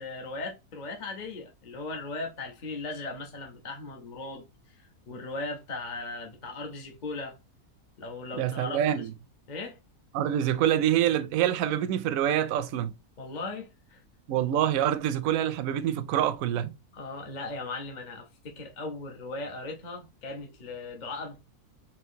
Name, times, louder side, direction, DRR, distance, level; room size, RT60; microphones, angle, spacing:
voice 1, 0.0-7.4 8.0-9.1 9.5-9.8 13.2-14.0 16.9-21.4, left 3 dB, 35° left, 0.9 m, -38 dB
voice 2, 8.4-9.1 10.1-12.9 14.3-16.7, right 11 dB, 70° right, 0.9 m, -26 dB
4.4 x 3.0 x 2.7 m
omnidirectional pair, 1.6 m